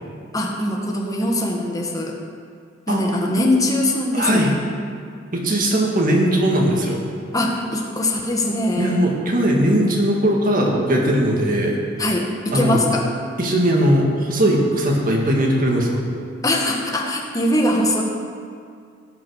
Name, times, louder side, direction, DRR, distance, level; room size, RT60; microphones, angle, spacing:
voice 1, 0.3-2.2 2.9-4.6 7.3-9.0 12.0-13.1 16.4-18.0, left 1 dB, 20° left, 0 dB, 1.5 m, -21 dB
voice 2, 4.1-4.5 5.3-7.0 8.8-11.8 12.5-12.8 13.4-16.0, right 1 dB, 50° right, -1 dB, 2.0 m, -19 dB
16.5 x 5.9 x 6.5 m, 2.2 s
head